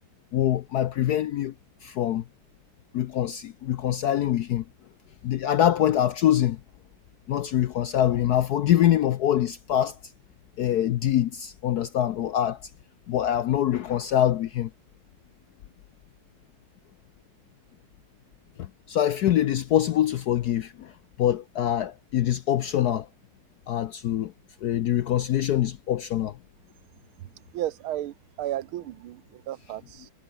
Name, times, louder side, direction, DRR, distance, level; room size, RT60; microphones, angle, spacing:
voice 1, 0.3-1.5 1.8-2.2 2.9-4.6 5.2-6.6 7.3-10.0 10.6-12.7 13.1-14.7 18.6-20.9 21.2-23.1 23.7-24.3 24.6-26.4, left 11 dB, 70° left, 0.9 m, -24 dB
voice 2, 27.5-30.1, right 13 dB, 85° right, 1.7 m, -33 dB
omnidirectional pair, 2.3 m